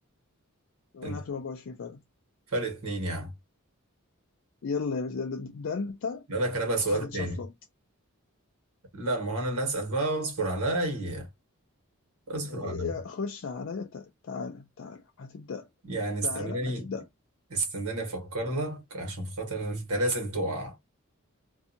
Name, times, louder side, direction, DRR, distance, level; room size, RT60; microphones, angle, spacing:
voice 1, 0.9-2.0 4.6-6.3 6.9-7.5 12.4-15.7 16.2-17.1, left 5 dB, 60° left, 0.4 m, -35 dB
voice 2, 2.5-3.3 6.3-7.4 8.9-11.3 12.3-12.9 15.8-16.9 17.5-20.7, right 2 dB, 90° right, 1.3 m, -30 dB
2.6 x 2.3 x 2.6 m
head